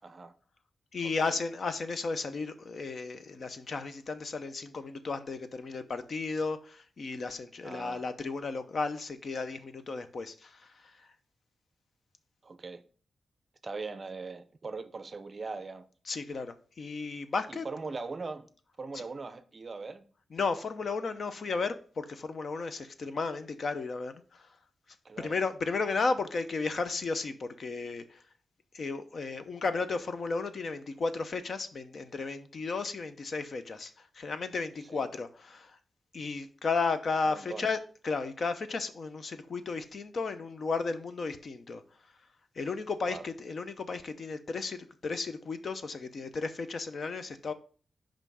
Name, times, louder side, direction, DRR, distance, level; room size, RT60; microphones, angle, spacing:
voice 1, 0.0-0.3 1.0-1.4 7.6-8.1 12.4-12.8 13.6-15.9 17.5-18.5 18.8-20.1 25.0-25.4 34.9-35.1 37.2-37.7 43.0-43.2, right 4 dB, 35° right, 0.6 m, -40 dB
voice 2, 0.9-11.1 16.1-17.6 18.9-19.0 20.3-24.5 25.2-28.2 28.7-35.8 36.1-37.8 38.0-41.8 42.6-47.5, left 4 dB, 50° left, 0.7 m, -34 dB
5.6 x 5.1 x 6.2 m
wide cardioid pair, 145°, 0 cm